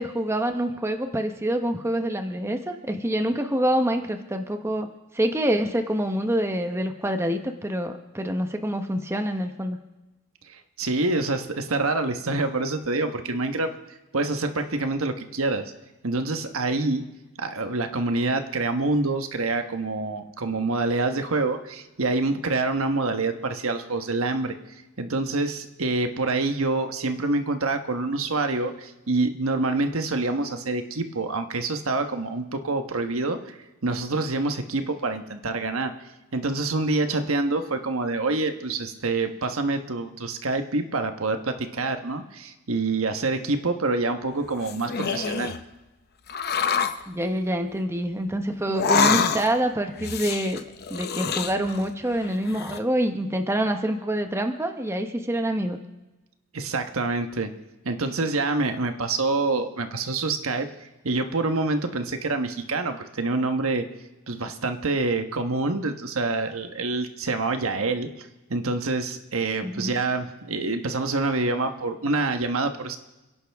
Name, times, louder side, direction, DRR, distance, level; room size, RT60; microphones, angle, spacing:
voice 1, 0.0-4.9 5.1-9.8 47.1-50.6 50.9-55.8 69.6-70.0, right 1 dB, 10° right, 5 dB, 0.9 m, -26 dB
voice 2, 10.5-13.7 14.1-15.7 16.0-17.0 17.4-24.5 25.0-35.9 36.3-45.5 56.5-57.5 57.8-60.7 61.0-63.9 64.3-73.0, right 3 dB, 65° right, 7 dB, 1.3 m, -26 dB
sound 1, 44.4-45.6 46.3-47.0 48.7-49.7 50.0-51.9 52.2-52.8, left 6 dB, 45° left, 0.8 m, -26 dB
30.0 x 11.0 x 3.5 m, 1.0 s
head